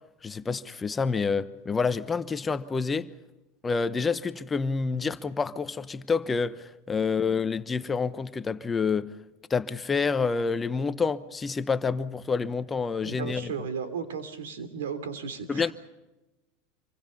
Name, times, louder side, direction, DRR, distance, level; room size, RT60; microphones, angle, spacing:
voice 1, 0.2-3.1 3.6-9.1 9.5-13.5 15.5-15.7, left 5 dB, 15° left, 0.9 m, -28 dB
voice 2, 13.0-15.7, right 6 dB, 90° right, 3.2 m, -35 dB
26.5 x 24.0 x 5.4 m
supercardioid pair, 120°, 0 cm